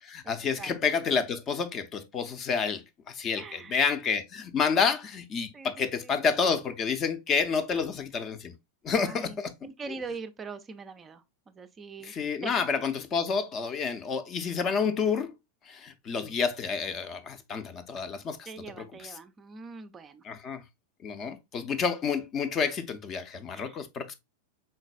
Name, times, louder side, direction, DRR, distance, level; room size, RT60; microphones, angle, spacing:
voice 1, 0.0-8.5 8.8-9.5 12.0-15.3 15.7-18.5 18.8-18.9 20.2-20.6 21.0-24.1, left 5 dB, 30° left, 0.5 m, -29 dB
voice 2, 3.4-3.8 5.5-6.1 8.9-9.4 9.6-12.1 12.4-12.6 18.5-20.2 23.5-23.8, right 4 dB, 20° right, 0.4 m, -42 dB
4.4 x 3.9 x 2.2 m
figure-of-eight pair, 90°, 0 cm